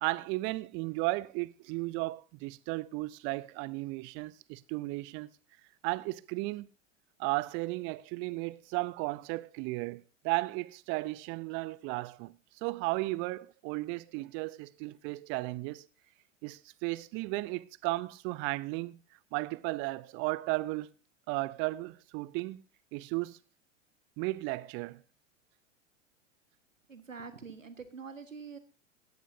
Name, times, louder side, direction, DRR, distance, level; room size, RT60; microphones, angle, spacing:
voice 1, 0.0-5.3 5.8-6.7 7.2-12.3 12.6-15.9 16.4-19.0 19.3-20.9 21.3-22.6 22.9-23.4 24.2-25.0, right 22 dB, 30° right, 0.6 m, -34 dB
voice 2, 26.9-28.6, right 5 dB, 85° right, 1.5 m, -45 dB
17.5 x 15.5 x 2.7 m
figure-of-eight pair, 95°, 38 cm